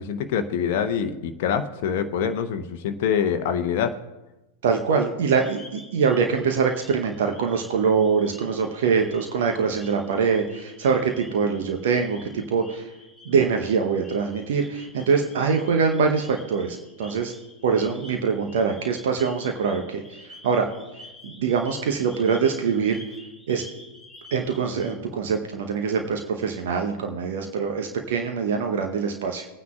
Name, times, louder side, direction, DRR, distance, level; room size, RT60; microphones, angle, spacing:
voice 1, 0.0-3.9, left 7 dB, 50° left, 8 dB, 0.7 m, -25 dB
voice 2, 4.6-12.9 13.2-17.3 17.6-20.7 21.2-23.0 23.5-23.6 24.3-29.5, right 5 dB, 55° right, 4 dB, 0.9 m, -24 dB
sound 1, 5.3-24.9, left 2 dB, ahead, 2.6 m, -49 dB
20.5 x 9.4 x 2.4 m, 1.0 s
figure-of-eight pair, 90°, 0 cm